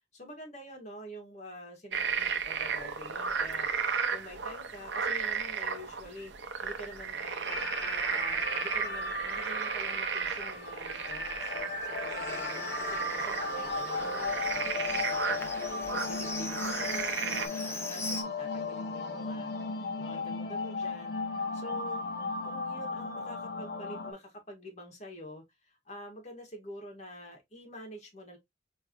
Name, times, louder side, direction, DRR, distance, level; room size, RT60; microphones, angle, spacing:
voice 1, 0.1-6.3 6.6-7.6 8.1-15.5 16.0-19.5 20.0-22.0 22.4-28.4, equal, 40° left, 1.9 m, -47 dB
sound 1, 1.9-17.5, right 6 dB, 75° right, 0.7 m, -34 dB
sound 2, 7.4-24.1, left 3 dB, 65° left, 0.8 m, -36 dB
Livestock farm animals working animals, 12.3-18.2, left 2 dB, 15° left, 0.7 m, -41 dB
4.6 x 3.3 x 3.0 m
head